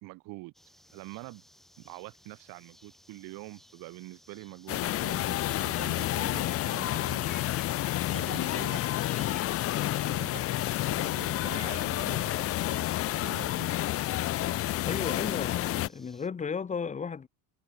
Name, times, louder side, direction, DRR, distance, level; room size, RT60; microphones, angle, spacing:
voice 1, 0.0-0.5 0.9-1.4 1.8-7.4 8.1-8.9 10.0-12.9 13.2-13.7, right 23 dB, 65° right, 1.9 m, -45 dB
sound 1, 0.5-16.3, equal, ahead, 3.2 m, -56 dB
sound 2, 4.7-15.9, left 15 dB, 35° left, 0.8 m, -30 dB
voice 2, 14.8-17.3, left 6 dB, 20° left, 1.8 m, -34 dB
cardioid pair, 160°, 37 cm